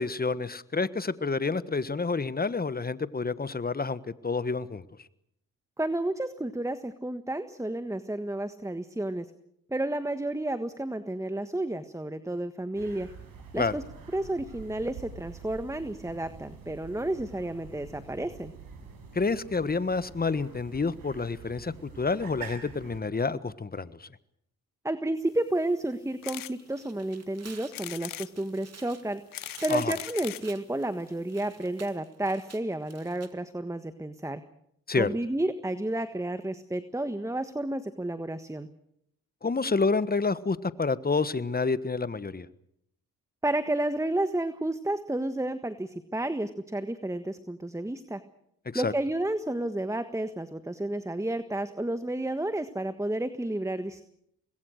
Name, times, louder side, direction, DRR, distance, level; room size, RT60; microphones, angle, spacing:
voice 1, 0.0-4.8 13.6-13.7 19.1-24.1 29.7-29.9 34.9-35.1 39.4-42.5 48.7-48.9, left 4 dB, 25° left, 15 dB, 1.4 m, -29 dB
voice 2, 5.8-9.3 9.7-13.1 13.5-13.8 14.1-18.5 24.8-29.2 29.6-34.4 35.0-38.7 43.4-48.2 48.7-54.0, right 1 dB, 10° right, 11 dB, 1.5 m, -31 dB
sound 1, 12.7-23.0, right 6 dB, 80° right, 6.1 m, -46 dB
sound 2, 26.2-26.5 27.0-27.1 27.7-28.3 29.1-30.5 31.3-31.4 31.6-31.7 31.9-32.0, left 13 dB, 75° left, 0.8 m, -39 dB
Tearing, 26.5-33.3, right 5 dB, 50° right, 2.4 m, -52 dB
25.0 x 20.5 x 6.6 m, 0.74 s
supercardioid pair, 50°, 34 cm